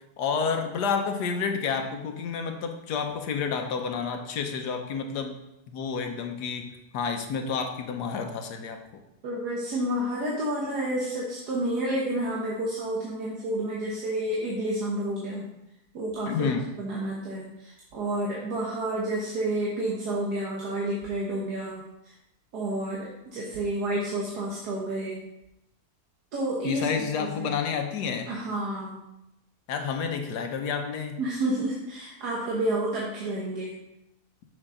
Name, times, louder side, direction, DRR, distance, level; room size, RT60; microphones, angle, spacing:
voice 1, 0.2-5.4 5.7-8.8 16.3-16.7 26.6-28.3 29.7-31.2, left 6 dB, 85° left, 5 dB, 1.4 m, -30 dB
voice 2, 9.2-15.4 15.9-16.5 16.8-22.1 22.5-25.2 26.3-26.9 27.2-27.5 28.3-29.0 31.2-33.7, right 1 dB, 75° right, -4 dB, 1.8 m, -30 dB
6.5 x 6.4 x 3.8 m, 0.87 s
omnidirectional pair, 1.7 m